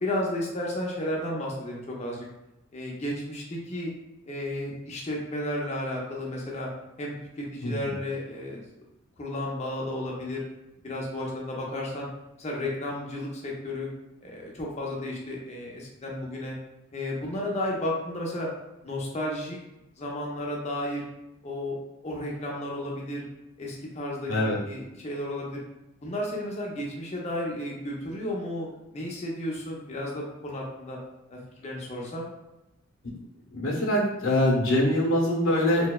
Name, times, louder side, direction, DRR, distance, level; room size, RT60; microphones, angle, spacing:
voice 1, 0.0-2.3 2.7-3.9 4.3-6.7 7.0-8.6 9.2-10.4 10.8-12.1 12.4-13.9 14.2-16.6 16.9-18.5 18.8-19.6 20.0-21.0 21.4-21.8 22.0-23.2 23.6-25.6 26.0-28.7 28.9-31.0 31.3-32.3, left 1 dB, 35° left, -2 dB, 0.5 m, -33 dB
voice 2, 24.3-24.6 33.5-35.9, left 1 dB, 85° left, -3 dB, 0.6 m, -24 dB
2.7 x 2.1 x 2.2 m, 0.93 s
head